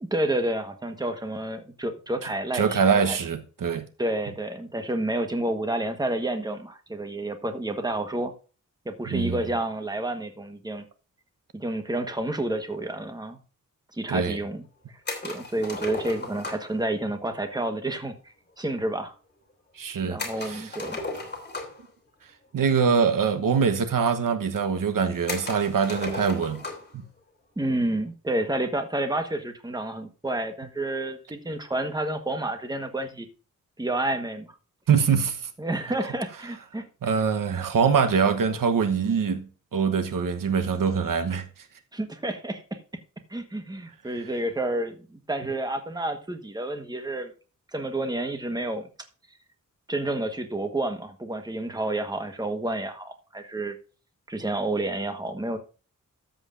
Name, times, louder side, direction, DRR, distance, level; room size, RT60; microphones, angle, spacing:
voice 1, 0.1-3.2 4.0-8.3 8.8-10.8 11.5-13.4 13.9-14.6 15.2-18.1 18.6-19.1 20.0-21.0 27.6-33.3 33.8-34.5 35.6-37.1 41.9-42.8 43.3-47.3 47.7-48.9 49.9-53.8 54.3-55.6, right 1 dB, 10° right, 1.4 m, -29 dB
voice 2, 2.5-3.9 9.1-9.4 14.1-14.4 19.7-20.7 22.5-26.6 26.9-27.0 34.9-35.5 37.0-41.7, right 6 dB, 80° right, 1.2 m, -24 dB
sound 1, 15.0-16.8 20.2-21.9 23.0-23.1 23.3-23.4 24.2-24.3 25.3-26.9, left 2 dB, 30° left, 3.0 m, -35 dB
13.0 x 8.0 x 2.6 m
wide cardioid pair, 155°, 32 cm